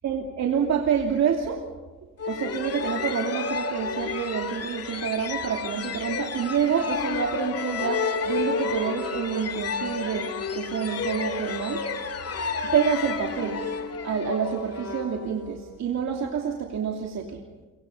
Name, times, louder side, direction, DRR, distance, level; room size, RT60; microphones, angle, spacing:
voice 1, 0.0-1.6 2.2-10.3 10.5-11.8 12.7-13.6 14.0-17.4, right 7 dB, 65° right, 1 dB, 2.8 m, -27 dB
sound 1, 2.2-15.7, left 5 dB, 55° left, 2.1 m, -31 dB
29.5 x 25.0 x 5.6 m, 1.3 s
cardioid pair, 90°, 30 cm